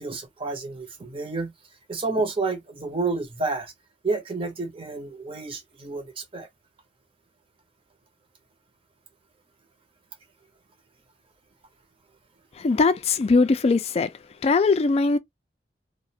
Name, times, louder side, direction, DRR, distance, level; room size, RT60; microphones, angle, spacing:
voice 1, 0.0-1.5 1.9-3.7 4.0-6.5, right 3 dB, 30° right, 0.7 m, -30 dB
voice 2, 12.5-14.1 14.4-15.2, left 4 dB, 35° left, 0.3 m, -20 dB
2.4 x 2.1 x 2.7 m
head